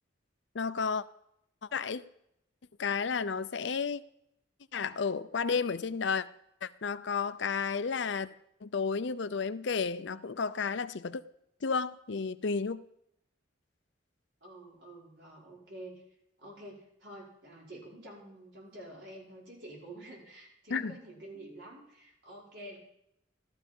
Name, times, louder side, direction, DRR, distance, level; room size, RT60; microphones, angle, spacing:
voice 1, 0.5-1.0 1.7-2.0 2.8-4.0 4.7-6.3 6.6-8.3 8.6-11.2 11.6-12.8 20.7-20.9, left 5 dB, 65° left, 0.5 m, -32 dB
voice 2, 14.4-16.0 16.4-22.8, right 1 dB, 60° right, 5.4 m, -48 dB
14.5 x 13.0 x 5.4 m
head